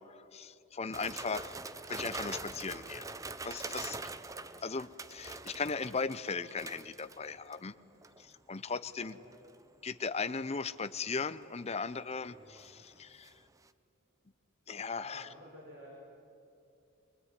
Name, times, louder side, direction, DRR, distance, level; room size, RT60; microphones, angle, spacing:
voice 1, 0.0-1.5 1.9-3.1 3.4-4.0 4.6-7.7 8.2-9.2 9.8-13.3 14.7-15.3, left 4 dB, 30° left, 14 dB, 0.7 m, -37 dB
sound 1, 0.9-7.7 8.0-8.3 9.1-9.6 11.7-13.3 13.7-13.8, right 3 dB, 15° right, 0.6 m, -44 dB
voice 2, 9.0-9.4 14.9-16.0, equal, 45° right, -5 dB, 6.1 m, -53 dB
23.0 x 23.0 x 9.8 m, 2.8 s
head